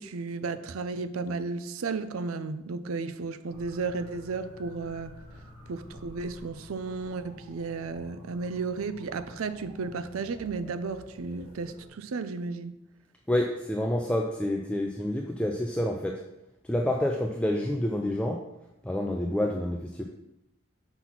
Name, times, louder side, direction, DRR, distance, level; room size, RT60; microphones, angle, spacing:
voice 1, 0.0-5.1 5.7-12.8, right 4 dB, 85° right, 12 dB, 0.5 m, -34 dB
sound 1, 3.5-11.9, equal, 25° right, 2.3 m, -50 dB
voice 2, 13.3-16.2 16.6-18.5 18.8-20.0, left 1 dB, 5° left, 1 dB, 0.3 m, -28 dB
5.9 x 4.0 x 5.8 m, 0.89 s
head